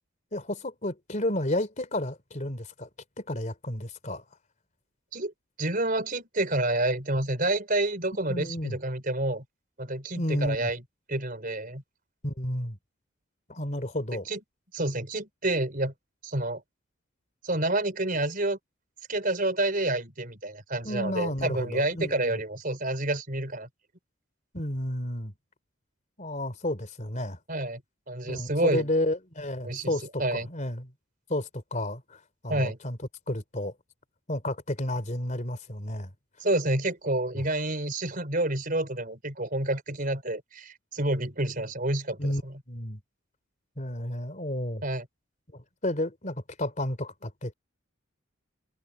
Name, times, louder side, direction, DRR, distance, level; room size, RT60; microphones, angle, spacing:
voice 1, 0.3-2.9 3.2-4.2 8.3-8.8 10.2-10.7 12.2-12.8 13.5-14.3 20.8-22.4 24.5-25.3 26.2-27.4 28.3-30.9 31.3-33.0 33.3-33.7 34.3-36.1 37.3-37.4 42.2-42.4 42.7-43.0 43.8-44.8 45.5-47.5, left 1 dB, 35° left, 3.3 m, -31 dB
voice 2, 5.6-9.4 9.8-10.8 11.1-11.8 14.3-14.4 14.7-15.9 16.2-16.6 17.4-18.6 19.1-23.7 27.5-27.8 28.1-28.9 29.6-30.5 32.5-32.8 36.4-42.6 44.8-45.1, right 2 dB, 40° right, 4.8 m, -29 dB
head